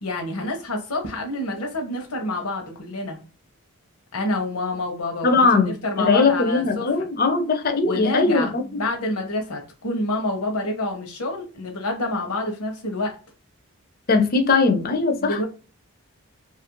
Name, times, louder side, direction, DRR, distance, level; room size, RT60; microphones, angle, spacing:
voice 1, 0.0-3.2 4.1-7.1 7.8-13.1 15.2-15.5, left 2 dB, 90° left, 0.8 m, -28 dB
voice 2, 5.2-8.8 14.1-15.4, left 4 dB, 40° left, 0.5 m, -20 dB
2.8 x 2.5 x 2.9 m
head